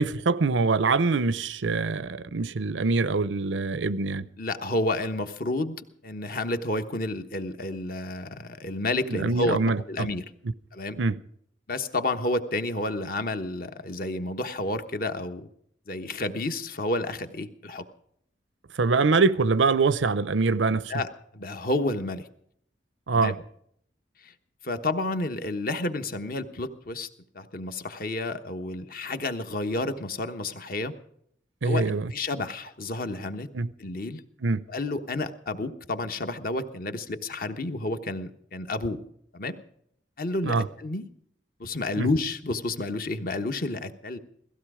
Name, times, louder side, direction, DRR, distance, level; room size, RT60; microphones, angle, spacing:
voice 1, 0.0-4.2 9.1-10.1 11.0-11.2 18.8-20.9 23.1-23.4 31.6-32.1 33.5-33.7 34.4-34.6 40.4-40.7 42.0-42.1, right 4 dB, 90° right, 0.7 m, -24 dB
voice 2, 4.4-9.6 9.9-10.2 10.7-11.0 11.7-15.5 15.9-17.9 20.9-22.3 23.1-23.3 24.2-24.3 24.6-27.1 27.3-30.9 31.6-33.5 33.8-34.2 34.7-39.0 39.3-39.6 40.2-41.1 41.6-44.2, left 2 dB, 50° left, 1.2 m, -30 dB
17.5 x 15.5 x 4.9 m
head